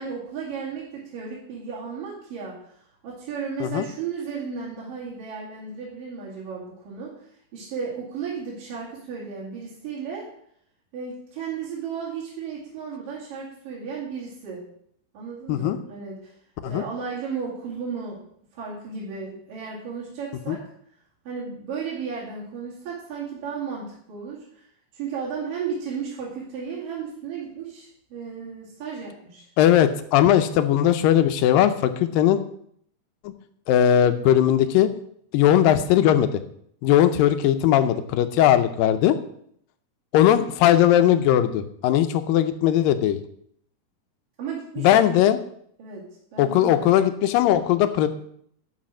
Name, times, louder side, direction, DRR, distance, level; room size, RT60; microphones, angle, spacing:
voice 1, 0.0-10.3 10.9-14.6 15.1-16.3 16.6-18.2 18.5-20.6 21.3-24.7 24.9-29.5 44.4-45.3 45.8-46.0 46.3-46.9, right 6 dB, 70° right, -7 dB, 3.9 m, -34 dB
voice 2, 29.6-32.4 33.2-33.3 33.7-34.9 35.3-36.4 36.8-39.2 40.1-43.2 44.8-45.4 46.4-48.1, left 11 dB, 80° left, 10 dB, 2.4 m, -19 dB
12.0 x 5.1 x 6.2 m, 0.66 s
omnidirectional pair, 4.1 m